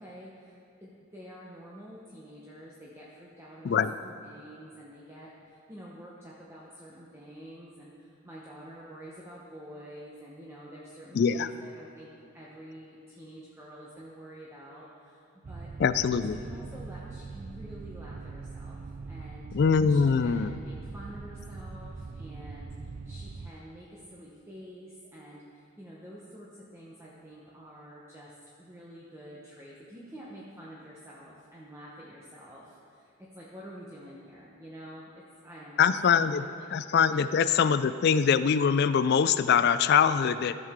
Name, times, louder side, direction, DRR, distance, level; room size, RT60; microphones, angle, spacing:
voice 1, 0.0-12.1 12.3-15.7 16.0-19.5 19.9-36.7 37.1-37.2, equal, 10° right, -6 dB, 0.8 m, -48 dB
voice 2, 11.1-11.5 15.8-16.4 19.5-20.6 35.8-36.5 36.7-40.6, left 6 dB, 50° left, 13 dB, 0.3 m, -23 dB
sound 1, 15.4-23.5, right 4 dB, 35° right, 0.3 m, -42 dB
14.0 x 6.6 x 3.6 m, 2.5 s
head